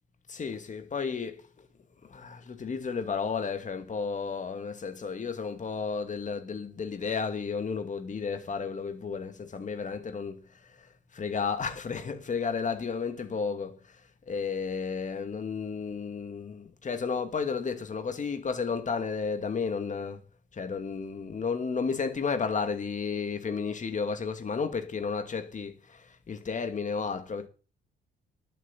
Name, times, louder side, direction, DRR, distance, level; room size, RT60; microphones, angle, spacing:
voice 1, 0.3-1.4 2.1-10.4 10.8-10.9 11.1-13.8 14.3-20.2 20.5-27.5, left 5 dB, 40° left, 2.3 m, -32 dB
11.0 x 7.8 x 7.3 m
cardioid pair, 90°, 20 cm